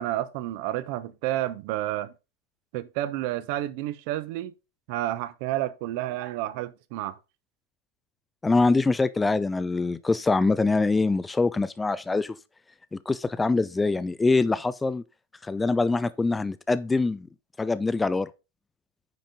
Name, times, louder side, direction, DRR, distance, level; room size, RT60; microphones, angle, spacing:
voice 1, 0.0-2.1 2.7-4.5 4.9-7.2, right 14 dB, 45° right, 0.8 m, -30 dB
voice 2, 8.4-12.3 12.9-15.0 15.4-17.3 17.6-18.3, left 3 dB, 10° left, 0.4 m, -24 dB
9.5 x 5.2 x 3.7 m
figure-of-eight pair, 90°, 0 cm